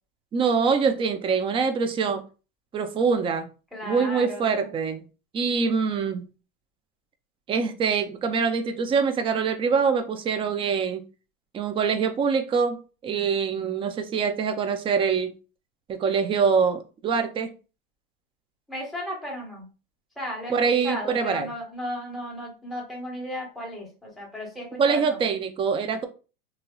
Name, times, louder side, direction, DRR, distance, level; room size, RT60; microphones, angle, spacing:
voice 1, 0.3-2.2 2.7-3.5 3.9-5.0 5.3-6.2 7.5-11.0 11.5-15.3 15.9-17.5 20.5-21.5 24.8-26.1, right 5 dB, 20° right, 0.4 m, -24 dB
voice 2, 3.7-4.7 18.7-19.6 20.2-25.2, equal, ahead, 1.3 m, -35 dB
2.8 x 2.8 x 2.2 m
supercardioid pair, 125°, 29 cm